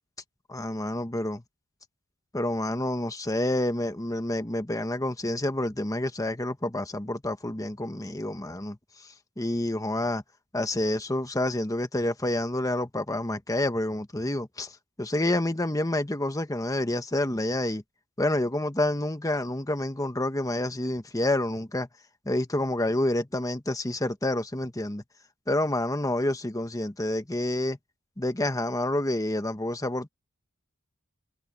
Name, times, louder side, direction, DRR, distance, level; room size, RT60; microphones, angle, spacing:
voice 1, 0.5-1.4 2.3-8.8 9.4-10.2 10.5-14.7 15.0-17.8 18.2-21.9 22.2-25.0 25.5-27.8 28.2-30.1, left 1 dB, 15° left, 1.2 m, -28 dB
head